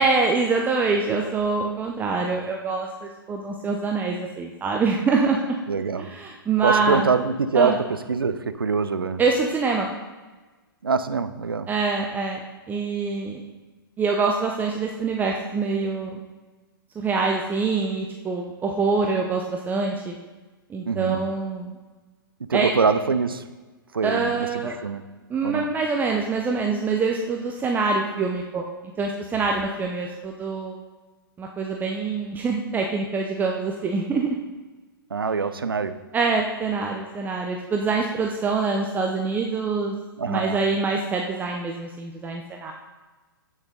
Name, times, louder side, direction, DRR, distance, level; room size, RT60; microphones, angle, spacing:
voice 1, 0.0-5.6 6.0-7.1 7.5-7.8 9.2-9.9 11.7-12.4 12.7-13.4 14.0-16.2 17.0-20.1 20.7-21.7 22.5-22.7 24.0-24.8 25.3-28.7 29.0-30.8 31.4-34.3 36.1-40.0 40.3-42.7, right 4 dB, 15° right, 1 dB, 0.8 m, -25 dB
voice 2, 5.7-6.1 6.6-9.2 10.8-11.7 20.9-21.2 22.5-23.4 23.9-25.0 25.4-25.7 35.1-36.0 40.2-40.6, right 5 dB, 75° right, 11 dB, 0.7 m, -24 dB
16.0 x 6.4 x 3.9 m, 1.3 s
figure-of-eight pair, 110°, 12 cm